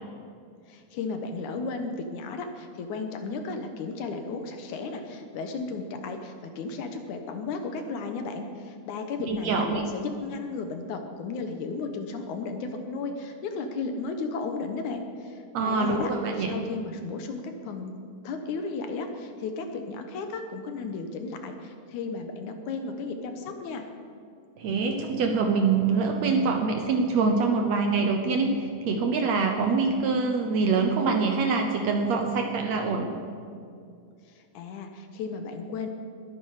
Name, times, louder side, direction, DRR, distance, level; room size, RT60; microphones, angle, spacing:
voice 1, 0.7-9.6 9.9-16.1 16.4-23.9 34.3-35.9, left 4 dB, 70° left, 6 dB, 2.2 m, -34 dB
voice 2, 9.3-9.8 15.5-16.6 24.6-33.2, right 4 dB, 70° right, 3 dB, 1.8 m, -25 dB
21.0 x 9.7 x 4.9 m, 2.3 s
omnidirectional pair, 3.9 m